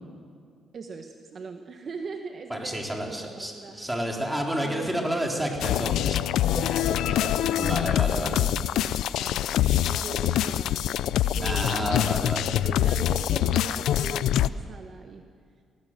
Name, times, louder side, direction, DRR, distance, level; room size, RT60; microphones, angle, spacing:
voice 1, 0.7-3.9 4.6-5.0 6.5-9.4 9.9-11.0 11.3-15.3, right 4 dB, 50° right, 5 dB, 1.4 m, -40 dB
voice 2, 2.5-6.2 7.5-8.5 11.4-12.5, equal, 5° right, 0 dB, 3.8 m, -30 dB
sound 1, 5.6-14.5, left 12 dB, 85° left, 0.4 m, -25 dB
18.5 x 18.5 x 7.6 m, 2.1 s
cardioid pair, 90°, 0 cm